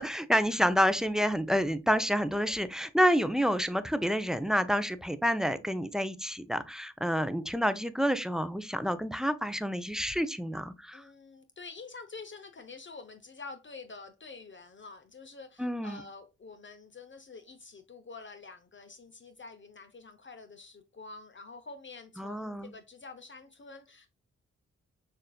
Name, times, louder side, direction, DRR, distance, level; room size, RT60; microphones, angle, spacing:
voice 1, 0.0-11.0 15.6-16.0 22.2-22.7, equal, ahead, 0.5 m, -28 dB
voice 2, 10.9-24.1, left 4 dB, 40° left, 0.7 m, -47 dB
6.4 x 2.6 x 2.2 m
supercardioid pair, 45°, 29 cm